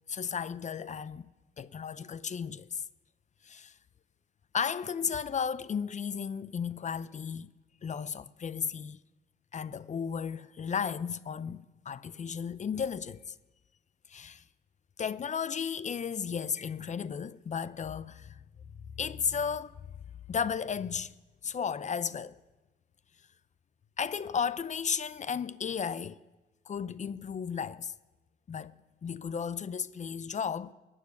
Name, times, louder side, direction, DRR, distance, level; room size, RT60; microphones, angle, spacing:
voice 1, 0.1-1.3 1.6-2.8 3.4-3.7 4.5-7.5 7.8-9.0 9.5-13.3 14.1-14.4 15.0-18.4 19.0-19.7 20.3-21.1 21.4-22.4 24.0-26.2 26.7-27.9 28.5-30.7, left 7 dB, 35° left, 0.5 m, -34 dB
16.0 x 7.3 x 9.5 m
cardioid pair, 90°, 20 cm